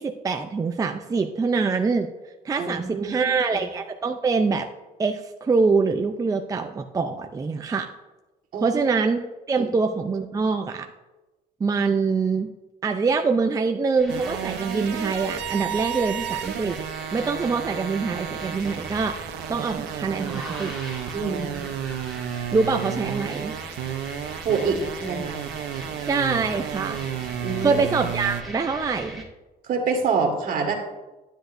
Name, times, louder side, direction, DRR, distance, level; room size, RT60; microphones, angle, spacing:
voice 1, 0.0-2.1 2.4-4.7 5.0-7.9 8.6-9.2 9.5-10.9 11.6-12.5 12.8-16.8 17.1-19.2 19.5-20.8 22.5-23.5 26.1-27.1 27.6-29.2, right 4 dB, 20° right, 5 dB, 0.5 m, -24 dB
voice 2, 2.6-3.6 8.5-9.0 9.6-9.7 21.1-21.7 24.4-25.4 27.4-27.8 29.6-30.7, right 5 dB, 55° right, 3 dB, 1.8 m, -27 dB
sound 1, 14.0-29.2, right 1 dB, ahead, 2.1 m, -39 dB
sound 2, 14.1-28.4, right 10 dB, 85° right, 0.6 m, -32 dB
10.0 x 10.0 x 2.6 m, 1.1 s
cardioid pair, 110°, 17 cm